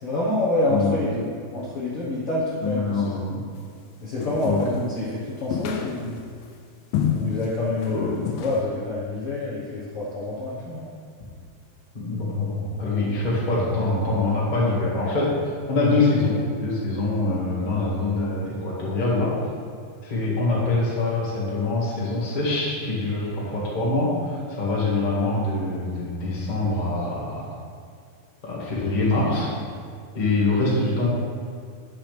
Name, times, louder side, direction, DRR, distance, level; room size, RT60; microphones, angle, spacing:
voice 1, 0.0-1.3 1.5-3.2 4.0-6.2 7.0-10.9, left 2 dB, 55° left, -8 dB, 1.6 m, -27 dB
voice 2, 2.6-3.4 4.4-4.6 7.9-8.1 11.9-19.3 20.0-27.5 28.4-29.5 30.1-31.1, left 2 dB, 20° left, -6 dB, 1.2 m, -24 dB
sound 1, 4.2-4.8 5.5-6.3 6.9-7.5 7.8-8.0 8.3-8.6, left 8 dB, 85° left, 2.5 m, -27 dB
10.5 x 7.9 x 3.4 m, 2.3 s
omnidirectional pair, 4.1 m